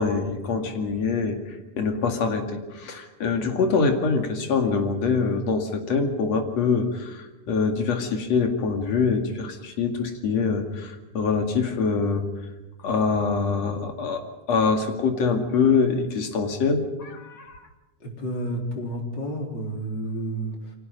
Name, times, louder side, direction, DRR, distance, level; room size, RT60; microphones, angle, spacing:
voice 1, 0.0-12.2 12.8-17.6, left 5 dB, 45° left, 5 dB, 3.0 m, -24 dB
voice 2, 18.0-20.7, right 1 dB, 30° left, 2 dB, 3.9 m, -31 dB
29.5 x 23.5 x 5.4 m, 1.1 s
omnidirectional pair, 4.5 m